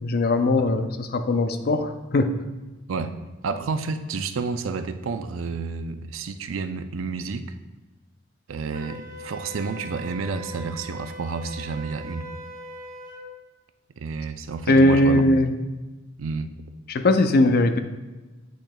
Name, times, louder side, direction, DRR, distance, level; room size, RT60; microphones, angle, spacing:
voice 1, 0.0-2.4 14.7-15.5 16.9-17.8, left 2 dB, 50° left, 8 dB, 0.5 m, -20 dB
voice 2, 3.4-7.5 8.5-12.2 14.0-15.3 16.2-16.5, right 4 dB, 80° right, 10 dB, 0.5 m, -30 dB
Wind instrument woodwind instrument, 8.7-13.2, equal, 45° right, 1.2 m, -40 dB
8.3 x 6.2 x 2.3 m, 1.2 s
head